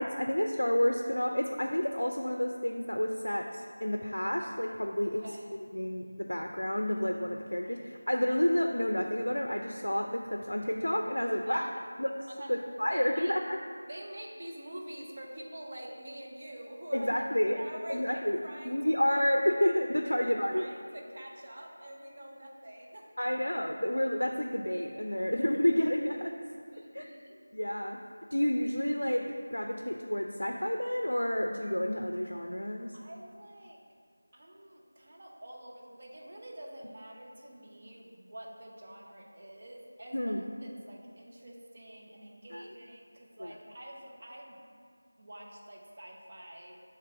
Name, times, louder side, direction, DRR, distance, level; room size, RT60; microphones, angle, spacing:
voice 1, 0.0-5.2 5.7-11.6 12.0-12.1 12.5-13.6 16.9-17.6 17.9-18.4 18.6-20.7 23.2-26.3 26.9-27.1 27.5-28.0 28.3-32.9 40.1-40.4 42.5-42.7 43.4-43.5, left 1 dB, 75° left, 3 dB, 0.4 m, -30 dB
voice 2, 5.2-5.5 11.5-11.9 12.3-13.3 13.9-17.1 17.5-19.2 20.0-23.4 26.7-27.4 32.9-33.8 34.3-44.6 45.2-46.8, right 1 dB, 35° right, -2 dB, 0.8 m, -47 dB
6.6 x 3.3 x 5.8 m, 2.1 s
figure-of-eight pair, 170°, 0 cm